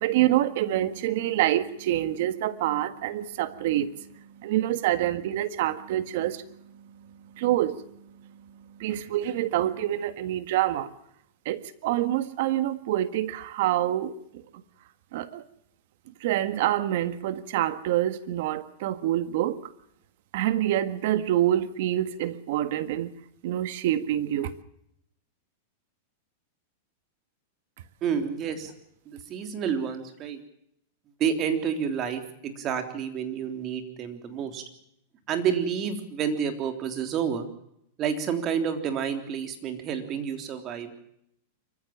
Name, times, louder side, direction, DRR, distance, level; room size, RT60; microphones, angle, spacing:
voice 1, 0.0-10.9 11.4-14.4 15.1-15.4 16.2-19.7 20.3-23.1 23.4-24.5, right 13 dB, 65° right, 13 dB, 1.6 m, -27 dB
voice 2, 28.0-28.7 29.0-30.4 31.2-34.6 35.3-37.5 38.0-41.0, right 7 dB, 35° right, 7 dB, 3.4 m, -29 dB
25.5 x 15.0 x 7.3 m, 0.74 s
hypercardioid pair, 130°, 0 cm